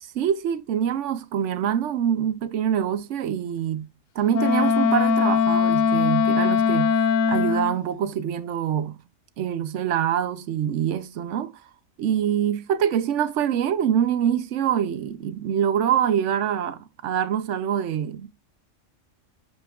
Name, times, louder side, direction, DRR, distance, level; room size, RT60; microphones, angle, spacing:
voice 1, 0.1-3.9 4.2-7.0 7.3-9.0 9.4-11.5 12.0-18.3, right 9 dB, 70° right, 1.0 m, -25 dB
Wind instrument woodwind instrument, 4.3-7.8, left 6 dB, 75° left, 1.0 m, -21 dB
8.7 x 5.3 x 2.3 m
omnidirectional pair, 1.3 m